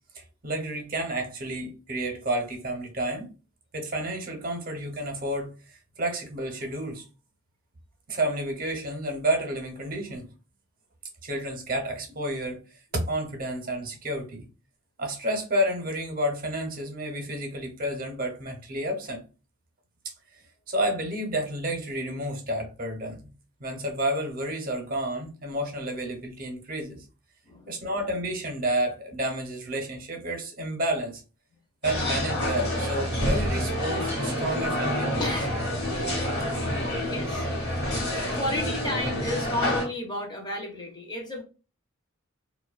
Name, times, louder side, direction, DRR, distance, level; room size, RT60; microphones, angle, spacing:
voice 1, 0.1-3.3 3.7-7.1 8.1-10.3 11.2-12.6 12.9-14.5 15.0-19.2 20.7-23.3 23.6-27.0 27.7-31.2 31.8-35.3, right 1 dB, 45° right, 0.6 m, -30 dB
sound 1, 31.8-39.9, left 1 dB, 55° left, 1.0 m, -28 dB
voice 2, 35.2-35.6 37.1-37.5 38.3-41.4, left 1 dB, 20° left, 0.5 m, -32 dB
2.5 x 2.1 x 2.3 m
head